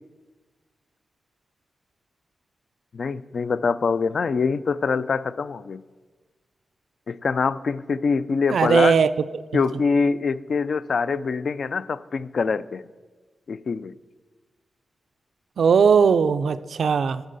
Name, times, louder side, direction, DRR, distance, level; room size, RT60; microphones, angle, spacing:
voice 1, 2.9-5.8 7.1-9.0 9.5-12.8 13.5-14.0, left 5 dB, 60° left, 16 dB, 0.3 m, -24 dB
voice 2, 8.5-9.1 15.6-17.2, right 6 dB, 80° right, 13 dB, 0.4 m, -18 dB
14.0 x 6.2 x 4.0 m, 1.3 s
wide cardioid pair, 110°, 0 cm